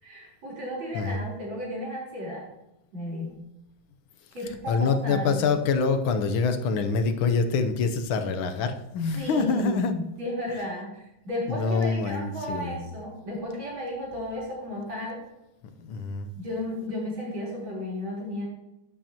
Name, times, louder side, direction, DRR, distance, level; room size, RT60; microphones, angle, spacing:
voice 1, 0.0-2.5 2.9-3.3 4.3-5.5 9.1-15.2 16.3-18.4, left 1 dB, 70° right, -5 dB, 4.7 m, -33 dB
voice 2, 4.7-9.9 11.5-12.9 15.8-16.3, left 4 dB, 80° left, 8 dB, 1.6 m, -26 dB
11.5 x 7.9 x 2.9 m, 0.89 s
omnidirectional pair, 2.3 m